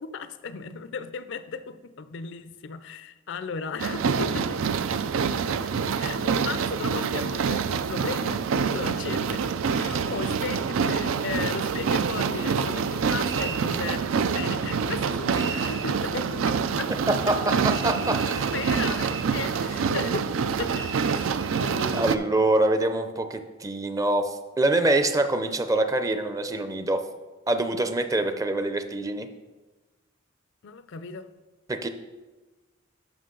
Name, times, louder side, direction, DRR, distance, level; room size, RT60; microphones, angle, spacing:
voice 1, 0.0-4.8 6.0-16.9 18.5-20.3 20.6-22.2 30.6-31.3, left 5 dB, 65° left, 12 dB, 0.5 m, -36 dB
sound 1, 3.8-22.2, right 6 dB, 85° right, 0.4 m, -26 dB
sound 2, 13.2-13.7 15.3-15.9 17.6-19.3 20.7-22.1, right 5 dB, 65° right, 1.2 m, -38 dB
voice 2, 17.1-18.5 21.9-27.0 27.5-29.3 31.7-31.9, right 2 dB, 15° right, 8 dB, 0.5 m, -25 dB
11.0 x 5.8 x 3.8 m, 1.2 s
head